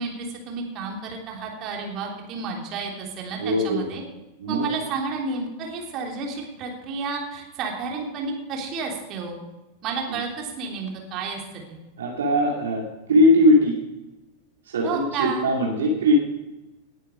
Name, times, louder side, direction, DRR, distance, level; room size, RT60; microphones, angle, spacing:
voice 1, 0.0-4.0 4.5-9.4 9.8-11.8 14.8-15.5, right 4 dB, 35° right, 0 dB, 3.4 m, -31 dB
voice 2, 3.4-3.8 4.4-4.7 10.1-10.2 12.0-13.7 14.7-16.1, left 1 dB, 65° right, -1 dB, 2.4 m, -20 dB
18.5 x 9.3 x 5.0 m, 1.1 s
figure-of-eight pair, 90°, 0 cm